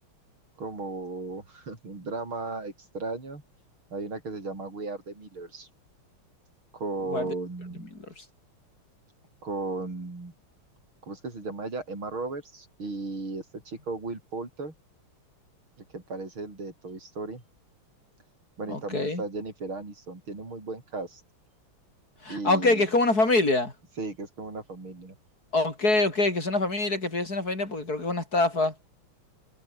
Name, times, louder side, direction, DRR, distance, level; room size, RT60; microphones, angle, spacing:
voice 1, 0.6-3.4 3.9-5.7 6.7-7.9 9.4-10.3 11.0-14.7 15.9-17.4 18.6-21.2 22.3-22.9 24.0-25.2, right 3 dB, 70° right, 7.2 m, -36 dB
voice 2, 18.7-19.2 22.2-23.7 25.5-28.7, left 2 dB, 45° left, 6.1 m, -25 dB
omnidirectional pair, 2.4 m